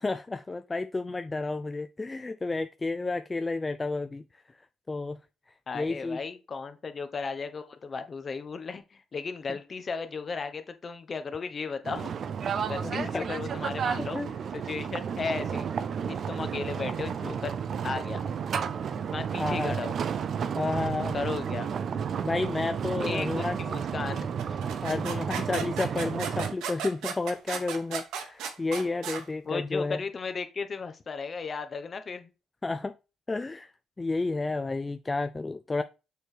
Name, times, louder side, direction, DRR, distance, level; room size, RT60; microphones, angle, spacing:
voice 1, 0.0-4.2 4.9-5.2 5.7-6.2 9.5-9.6 12.8-13.3 14.1-14.3 19.4-19.8 20.6-21.1 22.2-23.6 24.8-30.0 32.6-32.9 33.3-33.7 34.0-35.8, left 3 dB, 20° left, 0.3 m, -31 dB
voice 2, 5.7-12.1 12.6-14.2 14.5-15.7 16.1-17.6 17.8-18.2 19.1-19.9 21.1-21.7 23.0-24.8 29.5-32.3, left 4 dB, 40° left, 1.0 m, -35 dB
sound 1, 11.8-26.5, right 7 dB, 60° right, 0.5 m, -32 dB
sound 2, 24.4-29.2, right 7 dB, 90° right, 1.0 m, -35 dB
6.8 x 3.3 x 4.5 m
cardioid pair, 90°, 0 cm